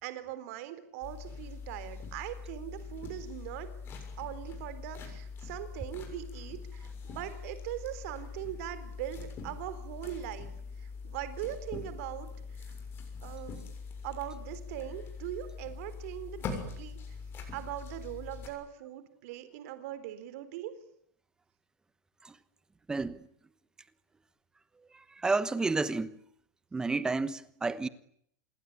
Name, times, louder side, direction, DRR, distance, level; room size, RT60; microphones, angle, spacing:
voice 1, 0.0-3.7 4.2-10.5 10.8-12.3 12.6-12.7 13.2-13.6 14.0-17.0 17.5-20.7, right 12 dB, 50° right, 4.0 m, -41 dB
sound 1, 1.0-18.5, left 5 dB, 25° left, 7.1 m, -43 dB
voice 2, 22.9-23.3 24.9-26.1 26.7-27.9, right 3 dB, 5° right, 1.1 m, -31 dB
27.5 x 22.0 x 9.9 m
supercardioid pair, 170°, 10 cm